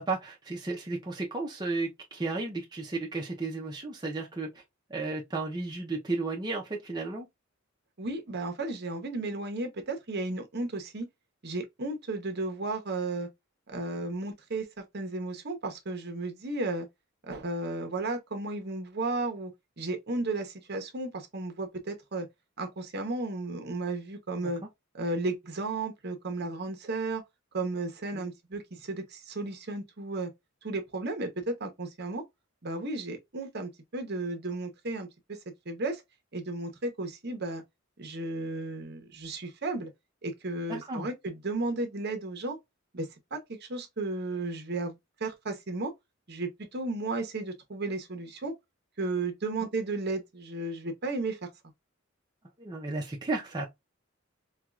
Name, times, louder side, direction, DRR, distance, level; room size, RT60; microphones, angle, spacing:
voice 1, 0.0-4.6 4.9-7.3 24.4-24.5 28.1-28.3 40.7-41.1 52.6-53.7, right 3 dB, 20° right, 0.6 m, -33 dB
voice 2, 8.0-11.1 11.4-13.3 13.7-16.9 17.3-19.5 19.8-22.3 22.6-24.6 24.9-27.2 27.5-30.3 30.6-32.2 32.6-35.4 35.7-36.0 36.3-37.6 38.0-39.9 40.2-42.6 42.9-45.9 46.3-48.5 49.0-51.4, right 2 dB, 55° right, 0.9 m, -34 dB
4.5 x 2.3 x 2.4 m
head